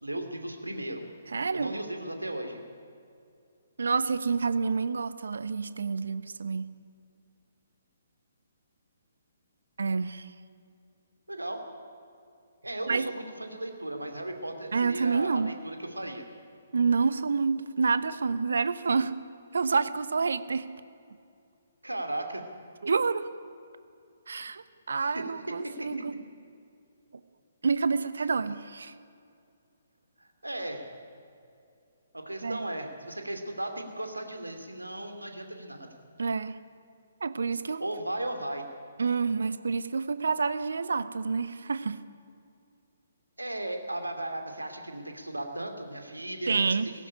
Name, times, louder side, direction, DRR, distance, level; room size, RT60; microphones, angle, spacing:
voice 1, 0.0-1.0 1.5-2.6 11.3-11.7 12.6-16.2 21.8-22.4 24.9-26.0 28.2-28.3 30.2-30.9 32.1-35.9 37.8-38.6 43.4-46.8, right 1 dB, 85° right, 5 dB, 2.7 m, -36 dB
voice 2, 1.3-1.7 3.8-6.7 9.8-10.3 12.9-13.1 14.7-15.5 16.7-19.1 19.5-20.7 22.8-23.3 24.3-26.1 27.6-28.9 32.4-32.7 36.2-36.6 37.2-37.9 39.0-42.0 46.5-46.9, right 4 dB, 65° right, 14 dB, 0.9 m, -28 dB
18.0 x 15.5 x 10.0 m, 2.5 s
figure-of-eight pair, 130°, 0 cm